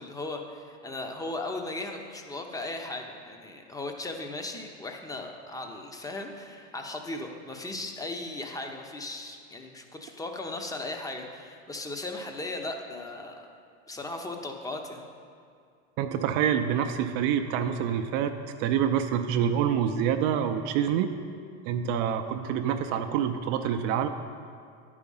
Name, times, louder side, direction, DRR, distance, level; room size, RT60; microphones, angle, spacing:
voice 1, 0.0-13.5 13.9-15.0, left 2 dB, 10° left, 4 dB, 0.8 m, -37 dB
voice 2, 16.0-18.3 18.6-21.1 21.7-24.1, right 8 dB, 55° right, 6 dB, 0.6 m, -26 dB
10.5 x 4.9 x 5.5 m, 2.3 s
supercardioid pair, 110°, 34 cm